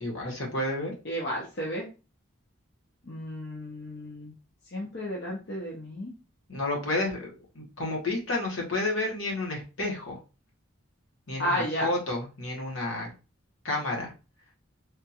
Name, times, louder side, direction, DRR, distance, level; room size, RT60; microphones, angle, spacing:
voice 1, 0.0-0.9 6.5-10.2 11.3-13.1 13.6-14.1, left 2 dB, 65° left, -1 dB, 1.1 m, -31 dB
voice 2, 1.0-1.9 3.1-4.3 4.7-6.1 11.4-11.9, equal, 50° left, -2 dB, 0.6 m, -32 dB
3.5 x 2.3 x 2.8 m, 0.32 s
head